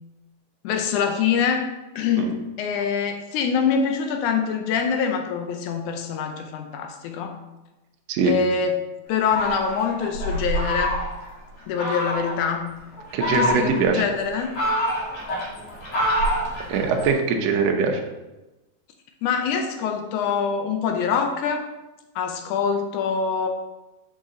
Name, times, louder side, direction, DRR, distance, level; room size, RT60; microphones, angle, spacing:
voice 1, 0.6-1.7 2.0-7.4 8.3-8.7 9.1-11.0 11.7-12.8 13.3-14.5 19.2-21.7 22.2-23.5, left 6 dB, 75° left, 4 dB, 1.9 m, -24 dB
Fowl, 9.2-11.3 11.8-12.4 13.0-13.9 14.3-17.1, equal, 50° left, 2.4 m, -26 dB
voice 2, 13.1-14.0 16.7-18.0, right 4 dB, 85° right, 2 dB, 1.4 m, -22 dB
6.5 x 4.8 x 3.7 m, 1.0 s
omnidirectional pair, 3.9 m